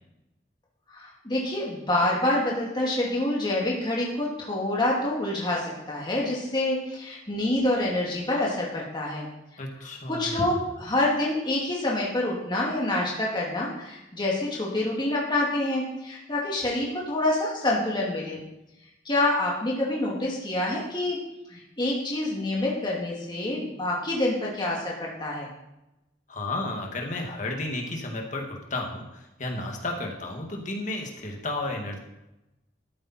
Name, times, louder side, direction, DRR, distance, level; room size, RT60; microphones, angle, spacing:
voice 1, 0.9-9.3 10.1-18.4 19.0-21.2 21.5-25.5, left 1 dB, 25° left, -3 dB, 2.4 m, -27 dB
voice 2, 9.6-10.3 26.3-32.0, left 2 dB, 45° left, 1 dB, 2.1 m, -32 dB
13.0 x 8.9 x 4.4 m, 0.93 s
head